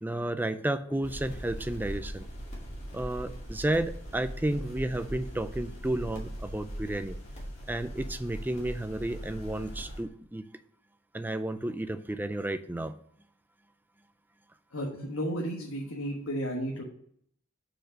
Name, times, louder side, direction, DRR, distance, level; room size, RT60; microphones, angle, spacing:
voice 1, 0.0-2.3 2.9-7.2 7.7-10.4 11.1-12.9, right 1 dB, 10° right, 11 dB, 0.4 m, -32 dB
sound 1, 1.0-10.0, equal, 35° left, 2.4 m, -40 dB
voice 2, 14.7-16.8, equal, 85° left, -1 dB, 1.3 m, -33 dB
6.3 x 5.1 x 6.0 m, 0.64 s
head